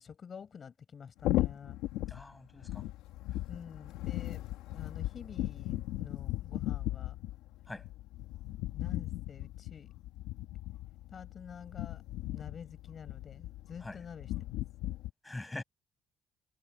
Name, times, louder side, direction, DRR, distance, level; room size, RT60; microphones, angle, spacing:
voice 1, 0.0-1.8 3.5-7.2 8.7-9.9 11.1-12.0 12.3-14.6, left 6 dB, 50° left, 7.5 m, -49 dB
sound 1, 1.2-15.1, left 15 dB, 90° left, 2.7 m, -37 dB
voice 2, 2.1-2.9 7.7-7.9 13.8-14.0 15.2-15.6, left 2 dB, 15° left, 7.4 m, -43 dB
supercardioid pair, 70°, 0 cm